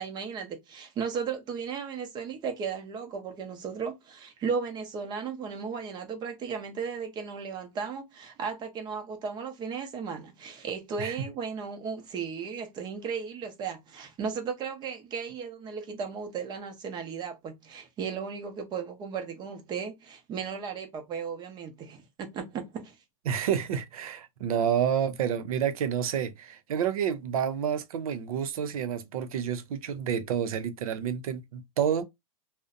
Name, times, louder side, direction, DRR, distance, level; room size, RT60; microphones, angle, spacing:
voice 1, 0.0-22.9, right 6 dB, 25° right, 0.6 m, -35 dB
voice 2, 23.3-32.0, right 8 dB, 75° right, 0.6 m, -29 dB
2.5 x 2.0 x 2.4 m
hypercardioid pair, 135°, 18 cm